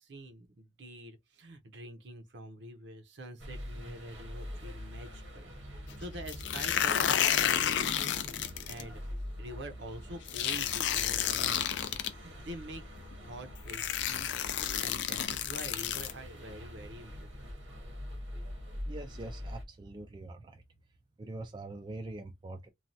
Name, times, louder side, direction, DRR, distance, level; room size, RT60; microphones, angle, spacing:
voice 1, 0.0-9.0 9.4-12.8 13.2-17.5, right 1 dB, 65° right, 0.7 m, -46 dB
sound 1, 3.4-19.6, equal, 90° right, 1.2 m, -44 dB
sound 2, 6.3-8.8 10.3-12.1 13.1-13.2 13.7-16.1, left 10 dB, 65° left, 0.4 m, -30 dB
voice 2, 18.9-20.6 21.2-22.7, right 2 dB, 25° right, 0.3 m, -43 dB
3.2 x 2.3 x 2.6 m
head